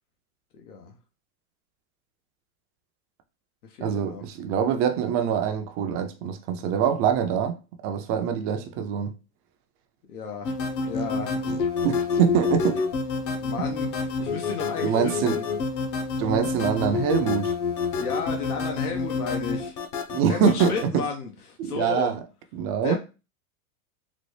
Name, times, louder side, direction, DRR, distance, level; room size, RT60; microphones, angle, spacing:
voice 1, 0.5-1.0 3.6-4.2 10.1-10.5 10.8-11.4 13.4-15.4 18.0-19.8 20.3-22.1 22.8-23.0, left 5 dB, 85° left, 0.9 m, -33 dB
voice 2, 3.8-7.6 7.8-9.1 11.5-12.8 14.8-15.4 16.2-17.5 20.1-21.0 21.6-22.2 22.5-23.0, right 7 dB, 30° right, 0.4 m, -24 dB
sound 1, 10.4-20.8, left 4 dB, 40° left, 0.8 m, -28 dB
4.0 x 2.0 x 3.2 m
supercardioid pair, 125°, 44 cm